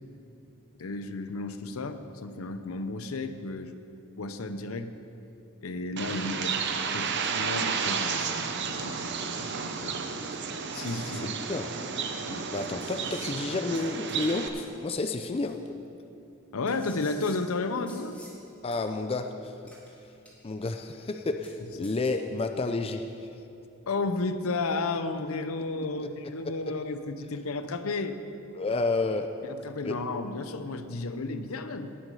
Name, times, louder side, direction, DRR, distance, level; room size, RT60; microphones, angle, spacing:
voice 1, 0.8-3.7 4.2-4.9 5.6-6.6 6.9-8.4 8.7-10.4 10.7-11.3 12.3-12.5 16.5-18.2 23.9-28.2 29.4-31.9, left 3 dB, 75° left, 10 dB, 0.7 m, -33 dB
Bird, 6.0-14.5, right 5 dB, 55° right, 0.7 m, -32 dB
sound 1, 10.8-11.1 12.2-12.3 12.8-13.3 13.7-14.3 14.6-14.7 15.5-15.6 16.7-18.3 18.7-18.8 19.7-19.9 20.2-20.7 20.9-21.0 21.4-21.5 21.8-22.1, equal, 5° left, 2.1 m, -51 dB
voice 2, 11.1-11.7 12.5-15.6 18.6-19.5 20.4-23.1 26.0-26.1 26.4-26.7 28.5-29.3 29.8-30.0, left 3 dB, 25° left, 7 dB, 0.4 m, -30 dB
17.5 x 6.1 x 5.5 m, 2.7 s
head